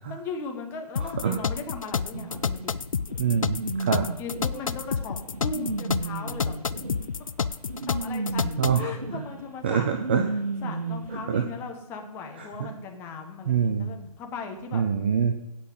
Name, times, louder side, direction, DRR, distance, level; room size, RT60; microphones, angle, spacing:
voice 1, 0.1-2.7 3.8-6.5 7.9-9.9 10.6-14.8, left 4 dB, 10° left, 3 dB, 1.3 m, -38 dB
sound 1, 1.0-8.9, left 6 dB, 55° left, 0.5 m, -29 dB
voice 2, 1.0-1.4 3.2-4.1 8.6-8.9 9.6-10.2 11.3-11.4 12.6-12.7 13.5-13.9 14.7-15.3, right 7 dB, 15° right, 6 dB, 0.5 m, -25 dB
sound 2, 2.1-11.2, right 3 dB, 65° right, 1.6 m, -34 dB
16.5 x 5.8 x 7.8 m, 0.93 s
figure-of-eight pair, 145°, 20 cm